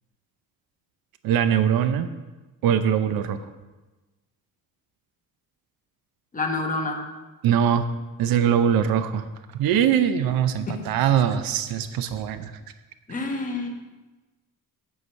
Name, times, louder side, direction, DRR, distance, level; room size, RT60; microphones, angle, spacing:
voice 1, 1.2-2.1 2.6-3.4 7.4-7.8 8.2-9.3 9.5-12.5, right 9 dB, 80° right, 10 dB, 0.6 m, -22 dB
voice 2, 6.3-7.1 10.7-10.9 13.1-13.7, left 3 dB, 20° left, 2 dB, 1.1 m, -28 dB
7.9 x 4.9 x 7.2 m, 1.2 s
cardioid pair, 155°, 35 cm